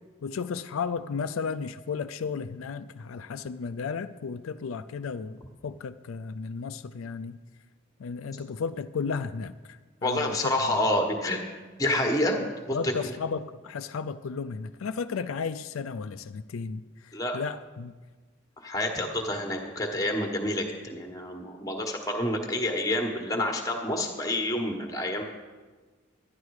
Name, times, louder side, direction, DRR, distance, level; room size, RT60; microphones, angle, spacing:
voice 1, 0.2-7.4 8.0-10.8 12.4-18.0, left 5 dB, 80° left, 11 dB, 0.4 m, -34 dB
voice 2, 10.0-11.4 11.8-12.4 12.7-13.1 17.1-17.4 18.6-25.2, left 1 dB, 15° left, 3 dB, 1.2 m, -28 dB
11.5 x 10.5 x 4.8 m, 1.4 s
head